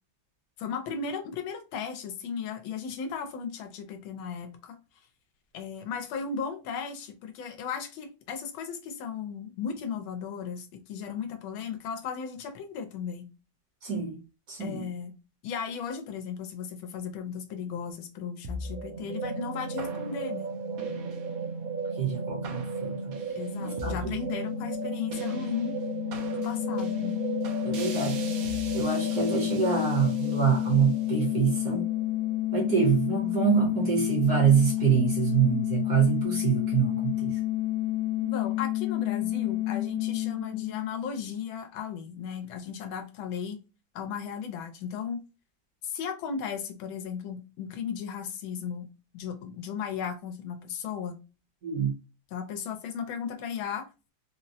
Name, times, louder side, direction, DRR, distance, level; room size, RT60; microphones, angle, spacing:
voice 1, 0.6-4.8 5.5-13.3 14.6-15.1 15.4-20.5 23.4-25.7 26.3-27.2 38.2-43.6 43.9-45.2 45.8-51.2 52.3-53.9, left 6 dB, 85° left, 1.4 m, -36 dB
voice 2, 13.8-14.2 14.5-14.8 22.0-22.9 23.6-23.9 27.6-28.2 28.7-31.9 32.5-37.3 51.6-51.9, right 7 dB, 55° right, 1.1 m, -25 dB
sound 1, 18.4-32.9, right 4 dB, 75° right, 0.8 m, -35 dB
sound 2, 23.9-41.4, left 16 dB, 60° left, 0.8 m, -30 dB
3.9 x 2.0 x 2.6 m
omnidirectional pair, 2.2 m